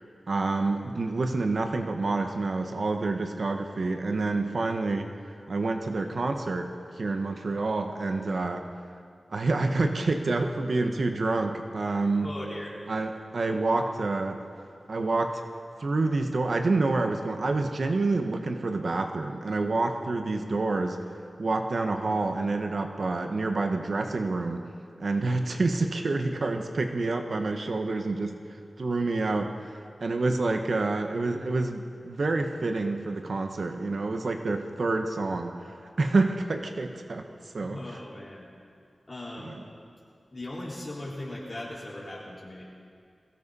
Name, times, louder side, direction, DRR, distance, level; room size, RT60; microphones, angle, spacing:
voice 1, 0.3-5.1 5.5-6.7 7.0-8.7 9.3-12.3 12.9-14.4 14.9-15.4 15.8-21.0 21.4-24.6 25.0-28.4 28.8-37.3 37.5-38.0 39.4-39.5, right 3 dB, 60° right, 5 dB, 1.0 m, -28 dB
voice 2, 12.2-12.8 37.6-38.4 39.1-39.5 40.3-42.6, left 1 dB, 35° left, -6 dB, 4.5 m, -38 dB
22.0 x 16.0 x 4.1 m, 2.3 s
wide cardioid pair, 100°, 0 cm